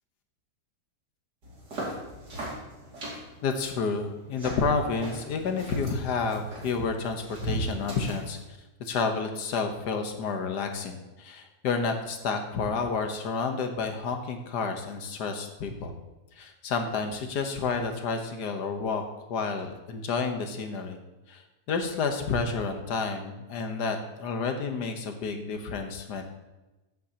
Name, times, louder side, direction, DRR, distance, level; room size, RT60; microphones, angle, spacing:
sound 1, 1.4-8.4, right 1 dB, 85° right, 3.1 m, -38 dB
voice 1, 3.4-8.4 8.8-15.9 16.4-19.0 19.3-21.0 21.3-21.4 21.7-26.2, left 4 dB, 85° left, 5 dB, 1.7 m, -30 dB
14.0 x 8.3 x 2.9 m, 1.1 s
omnidirectional pair, 1.7 m